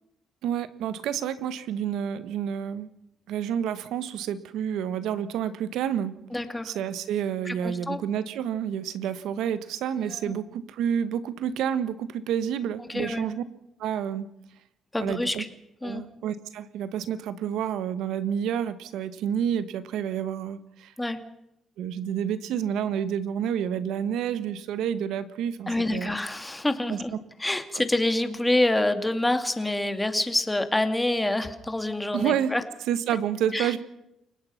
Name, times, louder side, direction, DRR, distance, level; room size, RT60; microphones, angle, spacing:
voice 1, 0.4-2.9 3.3-6.1 6.6-13.4 13.8-14.3 15.0-15.4 15.8-20.9 21.8-26.1 26.9-27.0 27.7-27.8 32.1-32.5 32.9-33.8, right 9 dB, 85° right, 13 dB, 1.4 m, -29 dB
voice 2, 6.3-6.7 7.5-8.0 10.1-10.3 12.8-13.2 14.9-15.5 15.8-16.0 21.0-21.2 25.7-27.1 27.4-32.6 33.5-33.7, left 1 dB, 10° left, 8 dB, 2.5 m, -27 dB
29.0 x 18.0 x 5.9 m, 0.81 s
cardioid pair, 90°, 0 cm